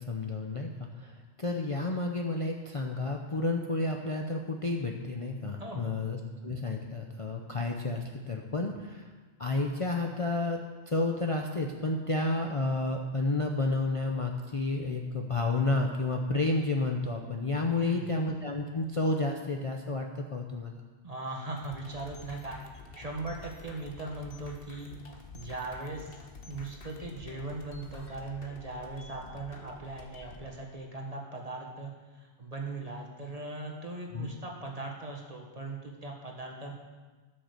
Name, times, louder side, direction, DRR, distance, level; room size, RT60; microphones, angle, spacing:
voice 1, 0.0-9.1 9.4-10.6 10.9-20.8 34.1-34.3, left 2 dB, 35° left, 1 dB, 0.7 m, -31 dB
voice 2, 5.6-6.0 17.8-18.1 21.0-22.6 23.0-25.0 25.3-36.7, right 2 dB, 35° right, 0 dB, 1.7 m, -39 dB
sound 1, 21.6-30.4, left 3 dB, 55° left, 1.4 m, -49 dB
12.5 x 6.6 x 6.6 m, 1.3 s
omnidirectional pair, 1.2 m